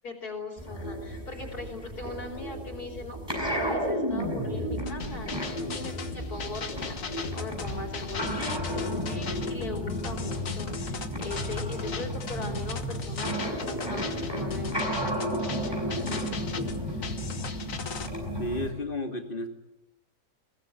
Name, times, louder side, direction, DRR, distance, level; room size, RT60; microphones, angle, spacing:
voice 1, 0.0-16.7, left 3 dB, 75° left, 1 dB, 4.6 m, -40 dB
sound 1, 0.6-18.7, equal, 15° right, 6.4 m, -33 dB
sound 2, 4.8-18.1, left 6 dB, 60° left, 1.8 m, -39 dB
voice 2, 18.3-19.5, left 1 dB, 35° left, 4 dB, 2.8 m, -32 dB
22.0 x 19.5 x 10.0 m, 0.92 s
omnidirectional pair, 1.6 m